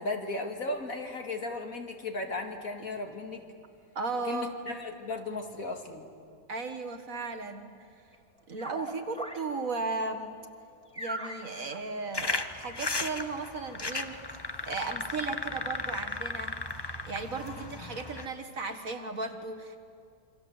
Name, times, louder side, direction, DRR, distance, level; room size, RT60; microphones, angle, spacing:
voice 1, 0.0-3.4 4.3-6.1, left 2 dB, 50° left, 4 dB, 2.7 m, -36 dB
voice 2, 4.0-4.6 6.5-7.7 8.5-10.4 11.0-14.4 14.7-16.6 17.1-19.8, right 3 dB, 50° right, 5 dB, 1.9 m, -35 dB
sound 1, 8.1-9.6 9.8-10.0 10.4-10.5 10.8-13.8 14.1-14.2 14.4-15.7, right 1 dB, 5° left, 2.2 m, -41 dB
sound 2, 12.1-18.3, left 3 dB, 20° left, 0.7 m, -35 dB
27.5 x 25.5 x 8.0 m, 2.4 s
omnidirectional pair, 1.9 m